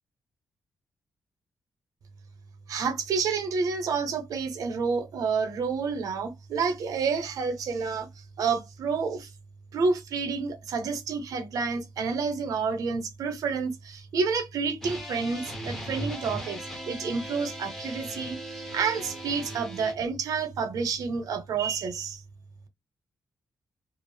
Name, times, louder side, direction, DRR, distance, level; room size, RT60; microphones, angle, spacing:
voice 1, 2.7-9.3 9.7-22.2, right 5 dB, 65° right, 0.7 m, -29 dB
sound 1, 14.8-19.9, equal, 5° left, 0.6 m, -38 dB
2.4 x 2.0 x 3.1 m
wide cardioid pair, 170°, 6 cm